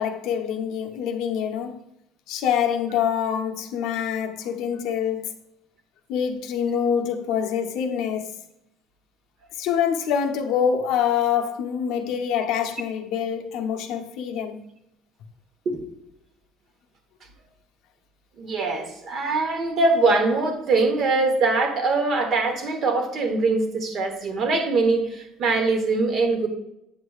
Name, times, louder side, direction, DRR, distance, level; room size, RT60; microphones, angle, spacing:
voice 1, 0.0-1.8 2.3-5.3 6.1-8.3 9.6-14.6, left 8 dB, 60° left, 0.7 m, -25 dB
voice 2, 18.4-26.5, right 3 dB, 35° right, 1.1 m, -22 dB
8.7 x 6.5 x 2.4 m
cardioid pair, 175°, 0 cm